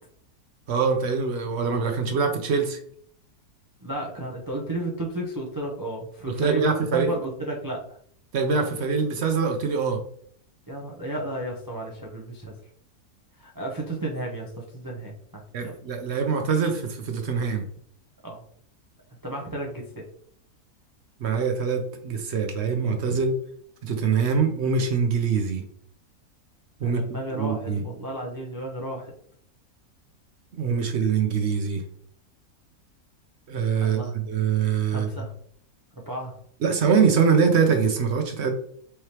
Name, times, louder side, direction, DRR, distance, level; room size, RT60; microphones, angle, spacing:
voice 1, 0.7-2.8 6.3-7.2 8.3-10.0 15.5-17.6 21.2-23.4 23.8-25.6 26.8-27.0 27.4-27.8 30.5-31.8 33.5-35.1 36.6-38.5, right 5 dB, 60° right, 5 dB, 0.7 m, -24 dB
voice 2, 3.8-7.8 10.7-12.5 13.4-15.7 18.2-18.4 19.2-20.0 23.1-23.2 26.8-29.1 33.8-34.1 34.9-35.3 36.1-36.4, right 2 dB, 30° right, -2 dB, 0.3 m, -33 dB
4.7 x 3.2 x 2.8 m, 0.62 s
omnidirectional pair, 1.6 m